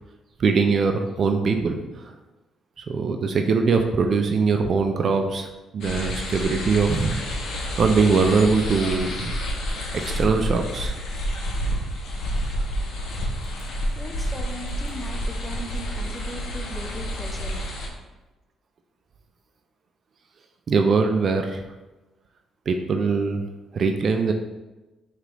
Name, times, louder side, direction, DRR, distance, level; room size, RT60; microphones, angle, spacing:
voice 1, 0.4-2.1 2.9-5.5 5.7-7.2 7.8-9.3 10.0-10.9 20.7-21.6 22.7-23.4 23.7-24.3, right 4 dB, 50° right, 5 dB, 0.3 m, -22 dB
sound 1, 5.8-17.9, equal, 80° left, 0.7 m, -29 dB
voice 2, 14.0-17.6, right 1 dB, ahead, 2 dB, 0.6 m, -38 dB
4.8 x 2.4 x 2.9 m, 1.1 s
cardioid pair, 90°, 0 cm